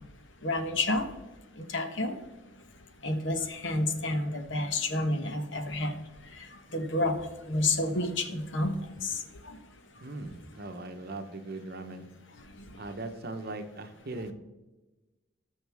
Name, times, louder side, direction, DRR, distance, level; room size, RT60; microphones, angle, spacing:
voice 1, 0.4-1.0 1.7-2.1 3.0-5.9 6.7-7.1 7.5-8.7 9.0-9.1, left 2 dB, 60° left, 7 dB, 1.3 m, -29 dB
voice 2, 10.0-12.1 12.8-14.3, right 2 dB, 50° right, 7 dB, 1.0 m, -39 dB
19.0 x 6.6 x 3.5 m, 1.1 s
head